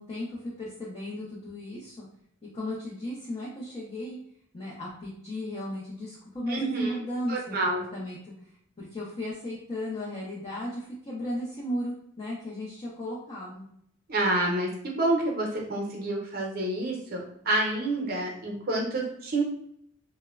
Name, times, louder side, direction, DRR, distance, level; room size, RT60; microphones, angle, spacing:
voice 1, 0.0-2.0 2.5-4.2 4.5-8.3 8.8-13.7, left 1 dB, 30° left, -5 dB, 0.5 m, -35 dB
voice 2, 6.5-7.0 7.3-7.8 14.1-19.4, right 2 dB, 50° right, 0 dB, 0.6 m, -28 dB
3.0 x 2.1 x 2.3 m, 0.70 s
head